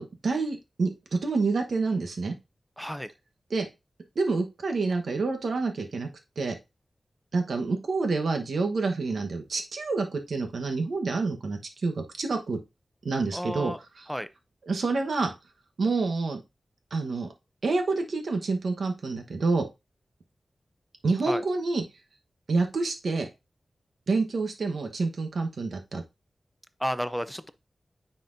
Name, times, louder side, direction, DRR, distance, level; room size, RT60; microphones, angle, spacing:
voice 1, 0.0-2.3 3.5-3.7 4.1-6.1 6.4-6.5 7.3-12.6 13.0-14.1 14.6-15.3 15.8-16.4 16.9-17.3 17.6-19.6 21.0-21.8 22.5-23.3 24.1-26.0, right 3 dB, 85° right, 1.1 m, -28 dB
voice 2, 2.8-3.1 13.3-13.8 14.1-14.3 21.3-21.4 26.8-27.5, equal, 5° left, 0.5 m, -31 dB
9.4 x 4.3 x 2.6 m
wide cardioid pair, 105°, 0 cm